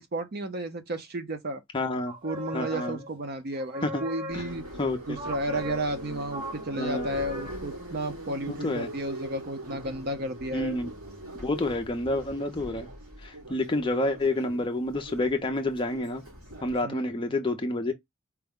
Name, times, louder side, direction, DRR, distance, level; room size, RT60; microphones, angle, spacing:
voice 1, 0.0-1.6 2.2-4.6 5.1-10.8 16.8-17.3, right 1 dB, 45° right, 0.5 m, -33 dB
voice 2, 1.7-2.1 2.5-3.0 3.8-4.0 4.3-4.4 4.8-5.2 6.8-7.1 8.6-8.9 10.5-10.9 11.4-12.9 13.2-16.2 16.6-17.9, left 2 dB, 20° left, 0.5 m, -29 dB
sound 1, 2.1-3.3 3.5-4.7 5.2-7.7, equal, 25° right, 0.9 m, -39 dB
Subway metro underground, 4.3-16.8, right 1 dB, 85° right, 3.2 m, -41 dB
4.5 x 2.1 x 3.4 m
head